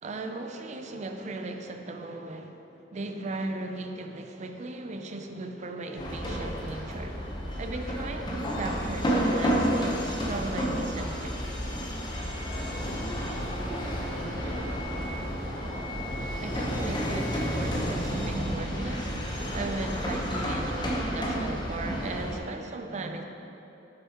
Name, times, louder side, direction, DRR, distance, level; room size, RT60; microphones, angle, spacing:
voice 1, 0.0-2.6 2.9-7.2 7.6-11.4 16.4-23.2, right 2 dB, 40° right, 5 dB, 0.4 m, -37 dB
sound 1, 6.0-22.4, equal, 25° left, 0.9 m, -31 dB
voice 2, 12.7-15.1, left 2 dB, 65° left, -4 dB, 0.7 m, -45 dB
7.9 x 6.6 x 3.0 m, 3.0 s
head